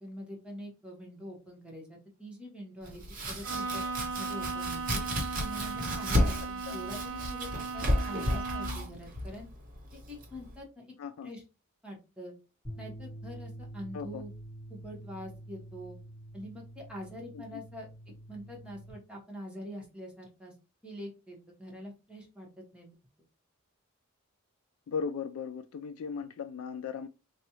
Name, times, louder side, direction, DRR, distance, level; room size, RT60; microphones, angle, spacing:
voice 1, 0.0-3.0 3.3-3.8 4.2-5.0 5.4-9.5 9.9-10.9 11.2-11.4 11.8-12.3 12.8-14.3 14.7-16.0 16.3-17.9 18.3-20.5 20.8-22.9, equal, 5° right, 1.1 m, -45 dB
Domestic sounds home sounds, 2.8-10.6, equal, 40° right, 1.0 m, -33 dB
Bowed string instrument, 3.4-8.9, right 4 dB, 65° right, 0.5 m, -37 dB
voice 2, 11.0-11.3 13.9-14.2 17.3-17.6 24.9-27.1, left 6 dB, 75° left, 0.3 m, -37 dB
sound 1, 12.6-18.9, right 1 dB, 25° left, 2.2 m, -46 dB
4.1 x 2.3 x 3.0 m
head